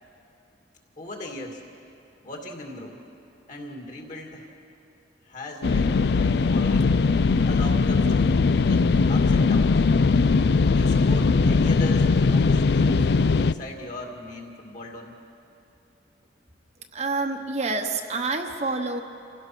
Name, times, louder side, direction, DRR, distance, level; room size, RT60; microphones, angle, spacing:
voice 1, 1.0-1.6 2.2-3.0 3.5-4.5 5.3-6.9 7.4-9.7 10.7-13.1 13.4-15.1, left 1 dB, 45° left, 1 dB, 2.5 m, -38 dB
sound 1, 5.6-13.5, left 4 dB, 60° left, 0.4 m, -20 dB
voice 2, 16.9-19.0, right 3 dB, 35° right, 4 dB, 1.0 m, -27 dB
28.0 x 16.5 x 6.1 m, 2.7 s
head